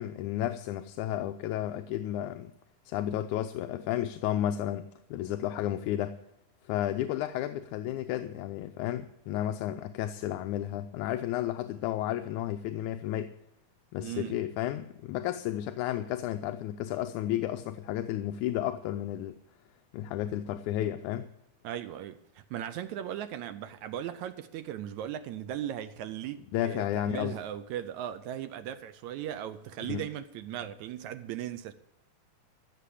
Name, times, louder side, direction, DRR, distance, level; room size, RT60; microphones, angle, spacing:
voice 1, 0.0-2.5 2.9-6.2 6.6-13.3 13.9-19.4 19.9-21.3 26.5-27.4 29.8-30.0, left 12 dB, 80° left, 2.0 m, -32 dB
voice 2, 14.0-14.4 21.6-31.7, right 11 dB, 75° right, 1.9 m, -38 dB
15.0 x 6.9 x 8.4 m
omnidirectional pair, 3.6 m